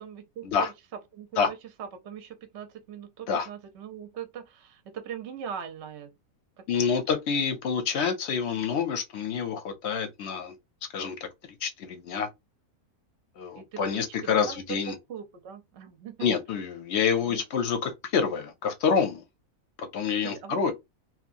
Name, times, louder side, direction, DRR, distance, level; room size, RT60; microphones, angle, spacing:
voice 1, 0.0-0.5 1.1-6.1 6.6-7.0 13.6-16.3 17.2-17.4 20.2-20.6, right 8 dB, 60° right, 0.8 m, -41 dB
voice 2, 6.7-10.6 10.9-11.2 11.4-12.3 13.4-14.9 16.2-19.2 19.8-20.7, left 6 dB, 60° left, 0.8 m, -27 dB
2.8 x 2.3 x 2.5 m
omnidirectional pair, 1.5 m